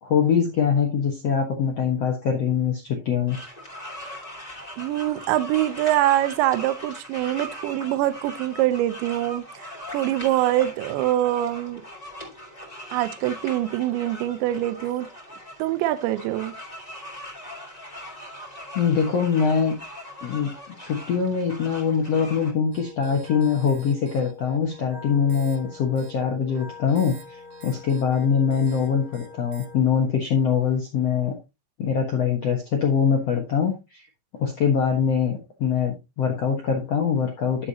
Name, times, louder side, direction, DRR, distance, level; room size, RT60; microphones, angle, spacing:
voice 1, 0.0-3.4 18.7-19.8 20.2-20.5 20.8-31.4 31.8-34.0 34.4-37.7, left 7 dB, 85° left, 1.4 m, -23 dB
sound 1, 3.3-22.5, equal, 10° left, 2.8 m, -40 dB
voice 2, 4.8-11.8 12.9-15.1 15.6-16.5, right 14 dB, 80° right, 3.1 m, -24 dB
sound 2, 22.7-29.8, left 2 dB, 55° right, 3.4 m, -44 dB
11.5 x 7.6 x 2.9 m
omnidirectional pair, 5.2 m